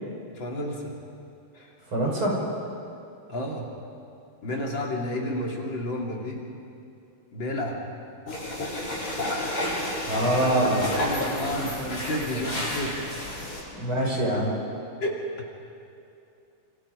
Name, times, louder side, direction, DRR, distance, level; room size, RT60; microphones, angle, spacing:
voice 1, 0.3-0.9 1.5-1.7 3.3-3.7 4.4-6.4 7.3-7.8 10.2-10.6 10.9-13.0 15.0-15.5, left 1 dB, 60° left, -1 dB, 3.8 m, -31 dB
voice 2, 1.9-2.4 10.1-10.9 13.7-14.5, right 1 dB, 70° right, -2 dB, 6.4 m, -24 dB
sound 1, 8.3-13.6, left 1 dB, 80° left, 7.8 m, -31 dB
29.5 x 27.0 x 5.3 m, 2.6 s
omnidirectional pair, 2.4 m